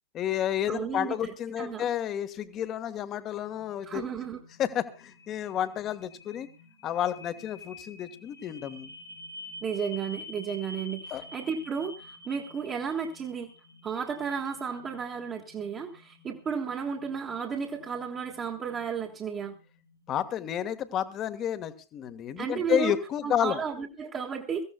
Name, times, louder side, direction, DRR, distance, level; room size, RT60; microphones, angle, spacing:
voice 1, 0.1-4.0 4.6-6.5 6.8-8.9 11.1-11.3 20.1-23.6, left 10 dB, 30° left, 12 dB, 1.3 m, -31 dB
voice 2, 0.7-1.8 3.8-4.4 9.6-11.0 11.3-13.5 13.8-19.5 22.4-22.9 23.2-24.6, right 6 dB, 25° right, -1 dB, 1.5 m, -33 dB
sound 1, 3.2-20.6, left 2 dB, 75° left, 3.0 m, -49 dB
24.5 x 15.0 x 2.2 m, 0.30 s
figure-of-eight pair, 90°, 0 cm